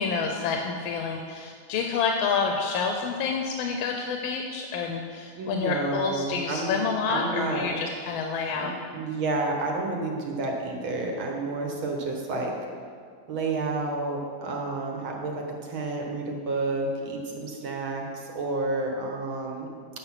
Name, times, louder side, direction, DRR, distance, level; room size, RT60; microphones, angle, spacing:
voice 1, 0.0-8.7, left 5 dB, 90° left, 3 dB, 1.5 m, -28 dB
voice 2, 5.4-6.8 7.1-7.8 8.5-12.5 13.3-19.7, right 2 dB, 80° right, 0 dB, 2.0 m, -30 dB
7.9 x 6.2 x 5.8 m, 2.2 s
omnidirectional pair, 2.2 m